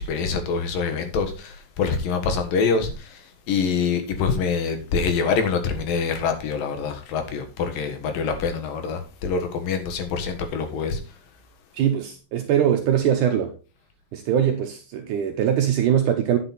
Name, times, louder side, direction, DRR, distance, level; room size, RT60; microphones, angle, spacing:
voice 1, 0.0-2.9 3.5-11.0, left 5 dB, 75° left, 3.1 m, -25 dB
voice 2, 11.7-13.5 14.1-16.4, right 9 dB, 75° right, 2.1 m, -22 dB
9.9 x 6.2 x 4.1 m
omnidirectional pair, 4.0 m